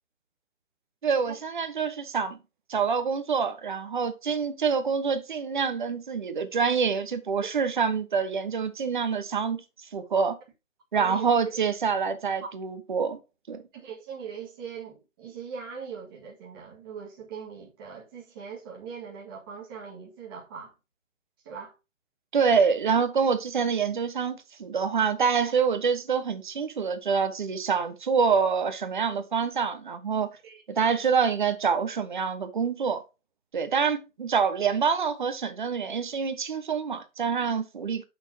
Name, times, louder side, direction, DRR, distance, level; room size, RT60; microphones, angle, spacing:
voice 1, 1.0-2.4 2.7-9.6 9.9-10.4 10.9-13.2 13.5-13.6 22.3-30.3 30.7-33.0 33.5-38.0, right 6 dB, 40° right, 1.2 m, -26 dB
voice 2, 10.9-11.2 12.4-12.5 13.7-20.7 21.5-21.7 30.4-30.9, right 6 dB, 20° right, 2.0 m, -41 dB
8.1 x 6.4 x 2.9 m
hypercardioid pair, 170°, 39 cm